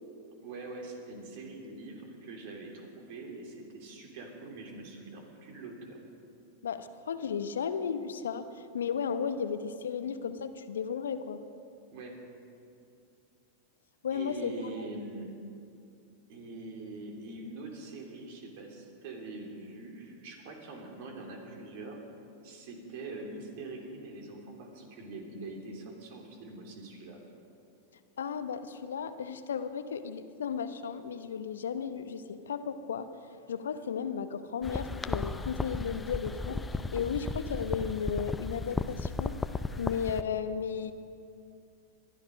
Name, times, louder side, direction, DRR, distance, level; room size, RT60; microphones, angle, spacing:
voice 1, 0.4-6.0 11.9-12.2 14.1-15.3 16.3-22.0 22.4-27.2, right 2 dB, 55° right, 1 dB, 3.2 m, -43 dB
voice 2, 6.6-11.4 14.0-14.9 28.2-33.1 33.5-36.6 36.9-39.4 39.8-40.9, left 7 dB, 75° left, 10 dB, 0.8 m, -34 dB
sound 1, 34.6-40.2, left 3 dB, 10° left, 0.6 m, -35 dB
22.0 x 12.5 x 5.2 m, 2.5 s
figure-of-eight pair, 95°, 0 cm